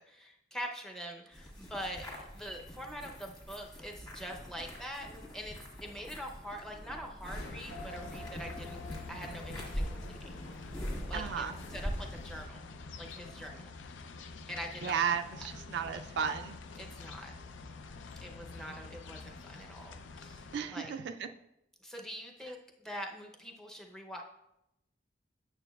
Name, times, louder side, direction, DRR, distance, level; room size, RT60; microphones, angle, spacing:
voice 1, 0.0-10.3 11.1-12.7 13.0-13.7 14.5-15.1 16.8-17.3 18.2-20.9 21.8-24.2, equal, 5° left, 1 dB, 0.6 m, -44 dB
sound 1, 1.3-12.4, equal, 25° left, 1.5 m, -43 dB
sound 2, 7.3-20.6, left 3 dB, 75° left, 0.5 m, -47 dB
sound 3, 7.7-12.5, left 1 dB, 50° left, 1.8 m, -52 dB
voice 2, 11.1-11.6 14.8-16.6 20.5-21.3, right 7 dB, 60° right, 7 dB, 0.3 m, -34 dB
9.0 x 6.6 x 2.3 m, 0.87 s
head